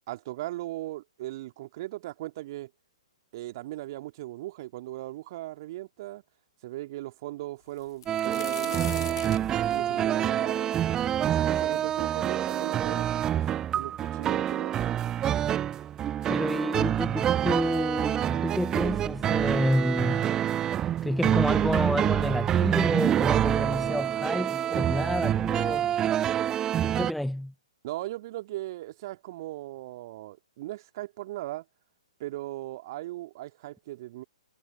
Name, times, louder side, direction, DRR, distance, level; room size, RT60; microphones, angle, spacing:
voice 1, 0.1-2.7 3.3-6.2 6.6-9.2 9.5-10.8 11.2-14.8 27.8-31.7 32.2-34.2, right 16 dB, 40° right, 2.2 m, -38 dB
sound 1, 7.8-11.6 12.1-12.2 13.0-13.1 13.3-14.0 14.9-15.0 15.4-15.6, left 11 dB, 50° left, 1.9 m, -43 dB
sound 2, 8.1-27.1, right 10 dB, 15° right, 0.8 m, -27 dB
voice 2, 16.3-20.3 20.7-26.1 26.8-27.5, left 1 dB, ahead, 0.4 m, -30 dB
figure-of-eight pair, 120°, 3 cm